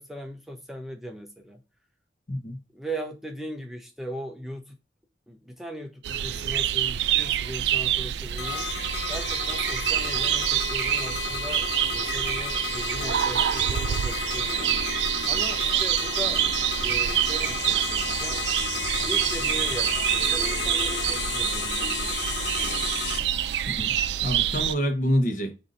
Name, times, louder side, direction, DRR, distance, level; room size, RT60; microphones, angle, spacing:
voice 1, 0.0-1.6 2.7-4.8 5.3-8.7 9.1-14.7 15.2-16.4 16.8-18.4 19.0-22.9, equal, ahead, 0.5 m, -38 dB
voice 2, 2.3-2.6 23.7-25.5, equal, 50° left, 0.9 m, -27 dB
sound 1, 6.0-24.7, right 11 dB, 80° right, 0.3 m, -27 dB
sound 2, 8.4-23.2, left 5 dB, 90° left, 0.5 m, -32 dB
sound 3, 12.7-24.9, right 1 dB, 50° right, 1.0 m, -44 dB
5.3 x 2.6 x 3.7 m
head